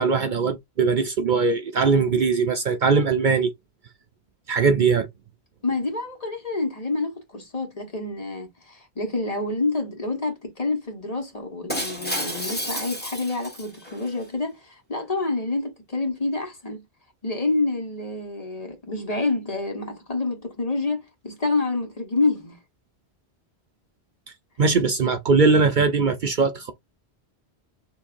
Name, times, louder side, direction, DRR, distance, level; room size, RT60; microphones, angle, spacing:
voice 1, 0.0-3.5 4.5-5.1 24.6-26.7, right 4 dB, 55° right, 0.7 m, -20 dB
voice 2, 5.6-16.8 17.2-22.6, left 3 dB, 35° left, 1.3 m, -28 dB
Shatter, 11.7-14.1, equal, 10° left, 1.5 m, -31 dB
6.8 x 2.7 x 2.5 m
omnidirectional pair, 1.1 m